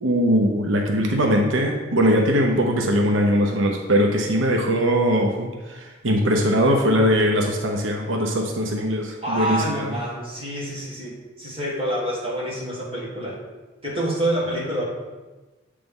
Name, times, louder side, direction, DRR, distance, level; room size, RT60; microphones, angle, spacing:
voice 1, 0.0-9.9, equal, 90° right, 2 dB, 0.8 m, -21 dB
voice 2, 9.2-13.4 13.8-14.8, right 1 dB, 30° right, -5 dB, 1.9 m, -27 dB
7.8 x 3.4 x 5.3 m, 1.2 s
head